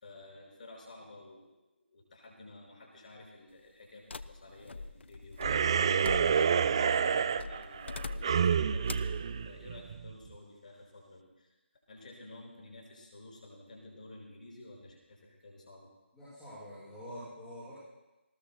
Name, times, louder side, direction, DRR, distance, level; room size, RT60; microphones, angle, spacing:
voice 1, 0.0-1.5 1.9-11.5 11.9-15.9, left 2 dB, 40° left, -2 dB, 5.5 m, -52 dB
sound 1, 4.1-6.7 7.4-8.5 8.9-9.2, left 3 dB, 65° left, 0.6 m, -42 dB
sound 2, 5.4-10.1, right 7 dB, 25° right, 0.3 m, -28 dB
voice 2, 16.1-17.7, equal, 5° left, -15 dB, 5.9 m, -46 dB
20.5 x 19.0 x 2.3 m, 1.0 s
figure-of-eight pair, 160°, 7 cm